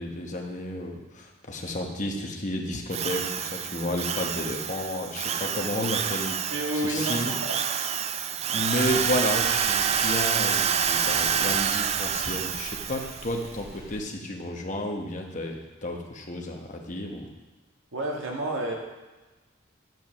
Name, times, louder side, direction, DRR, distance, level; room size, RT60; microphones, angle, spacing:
voice 1, 0.0-7.3 8.5-17.3, left 1 dB, 40° left, 1 dB, 1.2 m, -32 dB
Drill, 2.9-13.3, right 8 dB, 30° right, 0.3 m, -27 dB
voice 2, 6.5-7.6 17.9-18.7, right 1 dB, 80° right, 0 dB, 1.7 m, -30 dB
sound 1, 8.8-14.0, equal, 15° right, 2.0 m, -47 dB
9.2 x 5.6 x 5.8 m, 1.2 s
head